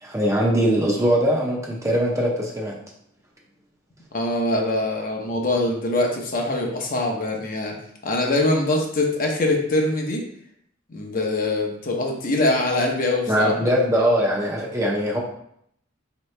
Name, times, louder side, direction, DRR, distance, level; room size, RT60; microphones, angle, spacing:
voice 1, 0.0-2.8 13.3-15.2, equal, 15° right, -2 dB, 0.6 m, -21 dB
voice 2, 4.1-7.7 8.0-10.2 10.9-13.5, left 2 dB, 45° left, 1 dB, 0.7 m, -23 dB
4.5 x 2.9 x 3.2 m, 0.71 s
head